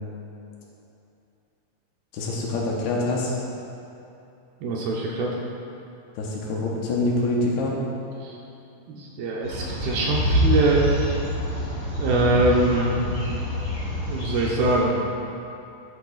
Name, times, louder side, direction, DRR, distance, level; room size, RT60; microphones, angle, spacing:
voice 1, 2.1-3.3 6.2-7.8, left 2 dB, 75° left, -3 dB, 2.7 m, -25 dB
voice 2, 4.6-5.3 8.2-8.3 8.9-10.9 12.0-13.0 14.1-15.0, right 2 dB, 75° right, -3 dB, 2.4 m, -23 dB
sound 1, 9.4-14.8, left 1 dB, 35° left, 1.8 m, -26 dB
12.5 x 8.0 x 2.4 m, 2.7 s
omnidirectional pair, 4.9 m